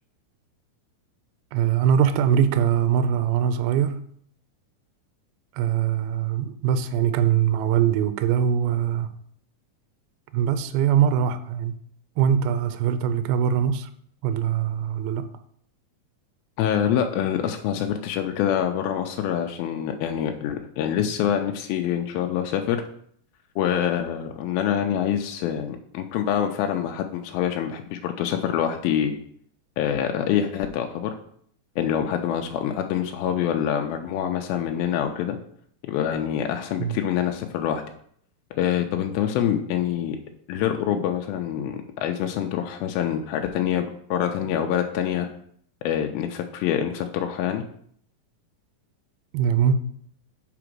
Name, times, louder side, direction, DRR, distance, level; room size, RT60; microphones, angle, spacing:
voice 1, 1.5-4.0 5.5-9.1 10.3-11.7 12.2-13.9 14.2-15.3 36.8-37.0 49.3-49.8, right 8 dB, 85° right, 2.4 m, -22 dB
voice 2, 16.6-22.8 23.6-29.2 29.8-31.2 31.8-35.4 35.8-37.8 38.5-40.2 40.5-43.9 44.1-45.3 45.8-47.6, left 9 dB, 85° left, 2.4 m, -25 dB
5.9 x 5.0 x 6.1 m
omnidirectional pair, 4.3 m